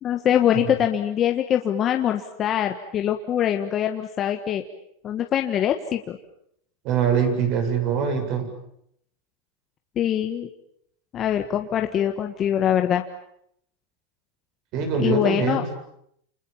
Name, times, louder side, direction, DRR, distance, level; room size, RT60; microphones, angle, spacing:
voice 1, 0.0-4.6 5.0-6.2 9.9-10.5 11.1-13.0 15.0-15.6, left 10 dB, 30° left, 5 dB, 1.5 m, -23 dB
voice 2, 6.8-8.5 14.7-15.8, right 6 dB, 50° right, 5 dB, 7.9 m, -23 dB
29.0 x 27.5 x 7.3 m, 0.72 s
supercardioid pair, 145°, 0 cm